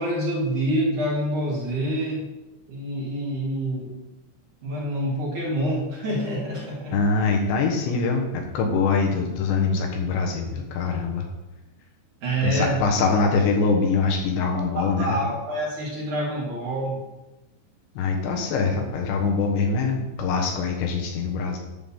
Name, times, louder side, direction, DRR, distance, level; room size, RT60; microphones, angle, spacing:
voice 1, 0.0-2.2 2.7-3.9 4.6-7.0 12.2-12.8 14.5-17.0, right 1 dB, 50° right, -5 dB, 2.9 m, -27 dB
voice 2, 6.9-11.2 12.4-15.2 18.0-21.6, left 4 dB, 80° left, 1 dB, 3.4 m, -23 dB
11.0 x 3.9 x 7.1 m, 1.0 s
omnidirectional pair, 5.2 m